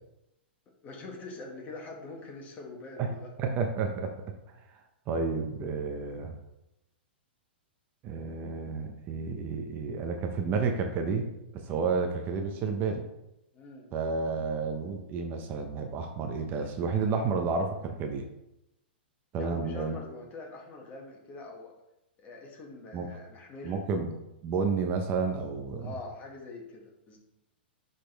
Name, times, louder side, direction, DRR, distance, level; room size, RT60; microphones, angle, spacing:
voice 1, 0.8-3.3 13.5-13.9 19.3-21.7 22.2-23.8 25.8-27.2, left 3 dB, 25° left, 0 dB, 1.9 m, -44 dB
voice 2, 3.4-4.1 5.1-6.3 8.0-11.3 11.7-13.0 13.9-18.3 19.3-20.0 22.9-23.1 23.6-24.1 24.4-25.9, right 5 dB, 35° right, 4 dB, 1.0 m, -31 dB
10.0 x 4.3 x 3.5 m, 0.89 s
hypercardioid pair, 115°, 6 cm